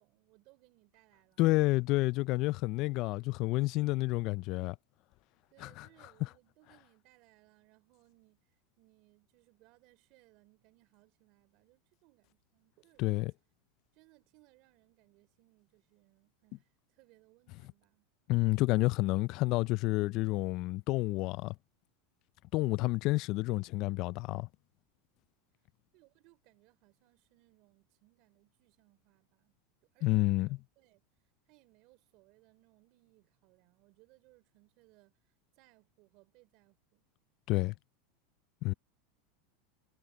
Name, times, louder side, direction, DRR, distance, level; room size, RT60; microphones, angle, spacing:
voice 1, 0.0-1.4 5.5-8.4 8.8-13.0 13.9-18.1 25.9-29.5 29.9-31.0 31.5-35.2 35.5-37.0, right 22 dB, 55° right, 3.2 m, -66 dB
voice 2, 1.4-4.8 5.6-5.9 13.0-13.3 18.3-21.5 22.5-24.5 30.0-30.5 37.5-37.7 38.6-38.7, left 21 dB, 50° left, 0.3 m, -29 dB
supercardioid pair, 135°, 0 cm